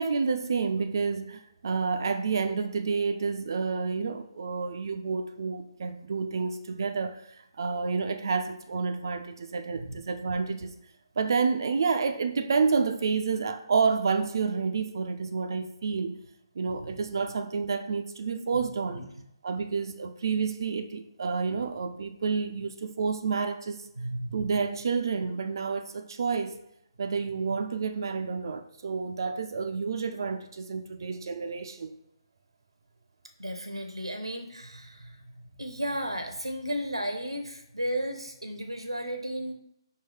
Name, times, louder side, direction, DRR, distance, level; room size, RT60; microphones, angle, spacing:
voice 1, 0.0-10.7 11.2-16.2 16.6-19.1 19.4-23.9 24.3-26.6 27.0-31.9, right 5 dB, 50° right, 0.4 m, -29 dB
voice 2, 24.0-24.4 33.4-35.2 35.6-39.5, equal, 85° right, 0.7 m, -34 dB
4.7 x 2.7 x 3.2 m
figure-of-eight pair, 140°, 3 cm